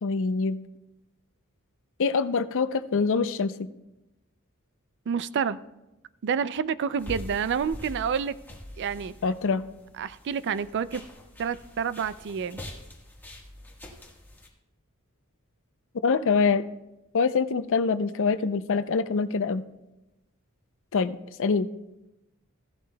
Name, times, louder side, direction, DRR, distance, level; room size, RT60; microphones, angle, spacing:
voice 1, 0.0-0.6 2.0-3.5 9.2-9.6 16.0-16.6 17.1-19.6 20.9-21.7, left 5 dB, 65° left, 13 dB, 0.5 m, -24 dB
voice 2, 5.1-5.6 6.2-8.4 8.8-9.1 10.0-11.0 11.4-12.6, right 7 dB, 55° right, 16 dB, 0.4 m, -28 dB
sound 1, 7.0-14.5, left 1 dB, 10° left, 1.4 m, -44 dB
15.5 x 11.5 x 2.2 m, 0.97 s
head